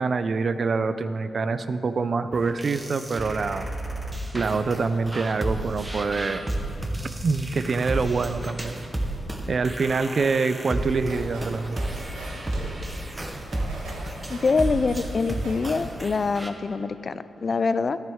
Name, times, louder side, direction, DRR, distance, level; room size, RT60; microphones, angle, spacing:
voice 1, 0.0-3.7 4.3-6.5 7.2-8.7 9.5-11.8, right 4 dB, 55° right, 12 dB, 0.4 m, -25 dB
sound 1, 2.3-16.5, right 1 dB, 25° right, 1.0 m, -32 dB
sound 2, 10.6-15.9, right 1 dB, 85° right, 1.1 m, -41 dB
voice 2, 14.3-18.0, left 4 dB, 50° left, 14 dB, 0.3 m, -25 dB
10.5 x 8.9 x 3.6 m, 2.9 s
supercardioid pair, 45°, 0 cm